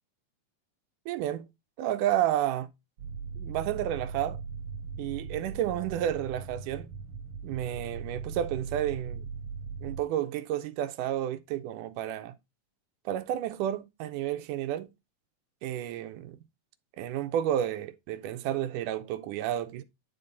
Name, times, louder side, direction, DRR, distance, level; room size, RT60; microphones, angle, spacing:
voice 1, 1.1-1.5 1.8-2.7 3.4-4.4 5.0-6.9 7.4-9.3 9.8-12.3 13.1-14.9 15.6-16.4 17.0-19.8, right 11 dB, 85° right, 2.2 m, -31 dB
sound 1, 3.0-10.0, right 5 dB, 55° right, 1.7 m, -39 dB
10.0 x 4.1 x 3.9 m
omnidirectional pair, 3.6 m